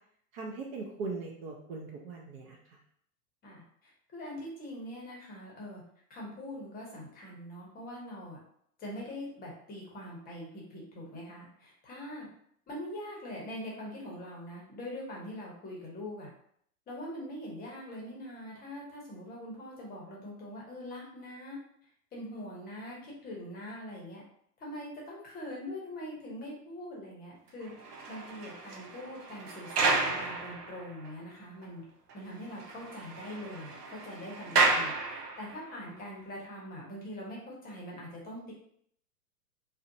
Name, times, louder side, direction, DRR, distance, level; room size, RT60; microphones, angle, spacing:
voice 1, 0.3-2.8, right 3 dB, 40° right, -1 dB, 0.5 m, -40 dB
voice 2, 3.4-5.8 6.1-8.4 8.8-12.3 12.7-16.3 16.9-21.6 22.1-24.2 24.6-27.7 28.1-31.8 32.1-38.5, left 1 dB, 20° left, -3 dB, 0.7 m, -43 dB
sound 1, 27.6-31.1 31.6-31.7 32.1-32.2 32.5-35.7, right 3 dB, 85° right, 0.7 m, -32 dB
2.5 x 2.1 x 2.5 m, 0.66 s
hypercardioid pair, 115°, 46 cm